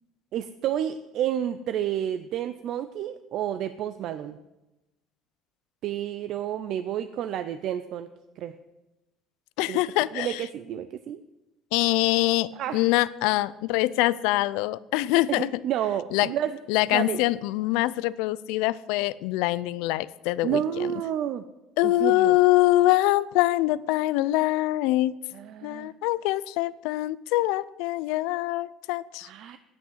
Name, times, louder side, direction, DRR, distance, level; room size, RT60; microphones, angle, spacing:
voice 1, 0.3-4.4 5.8-8.1 8.4-8.6 9.7-9.8 10.1-11.2 12.5-12.8 15.3-16.6 16.9-17.2 20.4-21.4 21.8-22.4 25.3-25.9 29.2-29.6, right 10 dB, 55° right, 11 dB, 0.5 m, -30 dB
voice 2, 9.6-10.4 11.7-15.5 16.1-16.3 16.7-20.6 21.8-25.1 25.6-29.3, left 17 dB, 85° left, 19 dB, 0.4 m, -24 dB
9.3 x 8.5 x 8.0 m, 1.0 s
cardioid pair, 130°, 0 cm